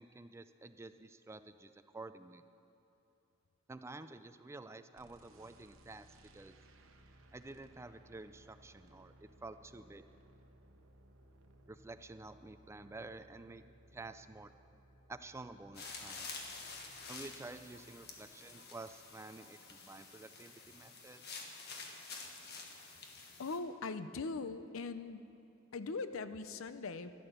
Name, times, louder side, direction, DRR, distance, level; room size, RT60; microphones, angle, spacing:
voice 1, 0.0-2.4 3.7-6.1 6.3-6.6 7.3-10.0 11.7-13.6 13.9-14.5 15.1-16.3 17.1-21.2, right 2 dB, 15° right, 11 dB, 0.3 m, -50 dB
sound 1, 5.0-18.3, right 1 dB, 75° right, 1.0 m, -63 dB
sound 2, 15.7-23.6, left 4 dB, 55° left, 1.5 m, -49 dB
voice 2, 23.4-25.2 25.7-27.1, left 3 dB, 75° left, 12 dB, 0.6 m, -40 dB
13.0 x 11.5 x 6.7 m, 2.9 s
head